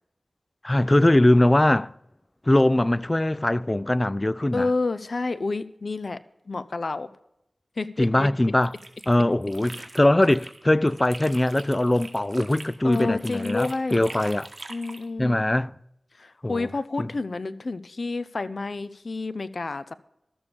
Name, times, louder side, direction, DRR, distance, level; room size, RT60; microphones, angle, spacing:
voice 1, 0.6-1.9 2.5-4.7 8.0-8.7 9.1-14.5 15.2-15.7 16.4-16.7 17.0-17.1, left 1 dB, 30° left, 0.4 m, -21 dB
voice 2, 4.5-6.2 6.5-7.1 7.8-8.3 12.8-14.0 14.7-15.4 16.2-19.9, left 3 dB, 70° left, 0.6 m, -29 dB
sound 1, 8.4-10.6 10.9-15.1, right 2 dB, 55° right, 1.7 m, -43 dB
13.0 x 7.1 x 6.8 m
cardioid pair, 45°, 0 cm